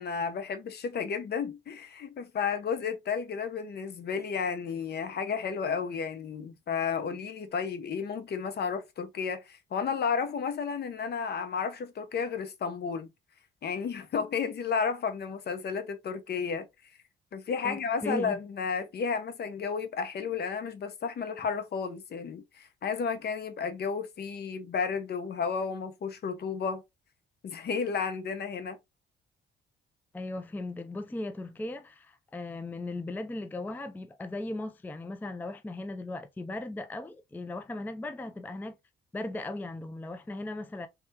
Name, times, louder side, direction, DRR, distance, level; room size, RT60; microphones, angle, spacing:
voice 1, 0.0-13.1 13.6-16.7 17.3-26.8 27.4-28.8, left 6 dB, 55° left, 0.9 m, -32 dB
voice 2, 17.6-18.4 30.1-38.8 39.1-40.9, left 2 dB, 10° left, 0.4 m, -37 dB
3.5 x 3.3 x 2.8 m
cardioid pair, 90°, 20 cm